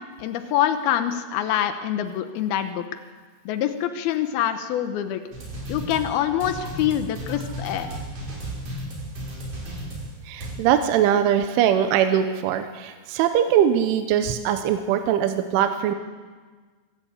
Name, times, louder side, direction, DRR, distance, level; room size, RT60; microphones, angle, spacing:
voice 1, 0.2-2.9 3.5-5.2 5.7-7.9, left 10 dB, 85° left, 8 dB, 2.1 m, -25 dB
sound 1, 5.3-10.6, right 1 dB, 35° right, 6.2 m, -34 dB
voice 2, 10.3-15.9, right 9 dB, 80° right, 7 dB, 3.3 m, -21 dB
25.0 x 15.5 x 8.2 m, 1.4 s
omnidirectional pair, 5.9 m